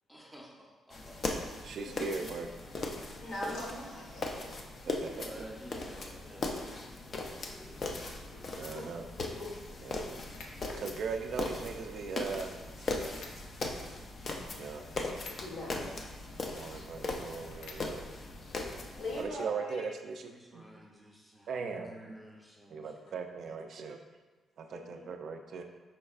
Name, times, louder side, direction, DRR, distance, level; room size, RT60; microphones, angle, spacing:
voice 1, 0.1-1.2 5.0-7.9 20.3-23.2, equal, ahead, -2 dB, 0.6 m, -51 dB
sound 1, 0.9-19.2, left 3 dB, 35° left, 0.4 m, -39 dB
voice 2, 1.6-2.6 4.9-5.3 8.6-9.1 9.8-10.0 10.8-12.6 13.2-13.3 14.6-14.9 16.5-18.0 19.2-20.6 21.5-21.9 22.7-24.0 24.6-25.6, right 5 dB, 55° right, 5 dB, 0.4 m, -39 dB
voice 3, 3.2-4.2 8.3-8.4 8.7-8.9 9.4-9.5 9.8-10.0 15.4-16.0 19.0-19.9 24.6-25.1, left 1 dB, 70° left, -4 dB, 1.3 m, -41 dB
sound 2, 7.4-19.4, left 1 dB, 90° left, 0.6 m, -52 dB
5.3 x 4.2 x 2.4 m, 1.3 s
cardioid pair, 155°, 0 cm